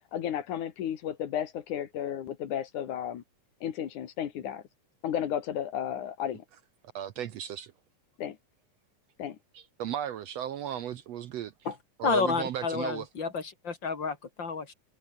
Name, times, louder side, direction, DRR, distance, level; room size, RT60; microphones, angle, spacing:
voice 1, 0.1-3.2 3.6-4.6 5.0-6.4 8.2-8.4 9.2-9.4, left 10 dB, 75° left, 3.1 m, -33 dB
voice 2, 6.9-7.7 9.8-11.5 12.0-13.1, right 10 dB, 65° right, 1.9 m, -35 dB
voice 3, 12.0-14.7, left 5 dB, 35° left, 3.4 m, -30 dB
omnidirectional pair, 3.6 m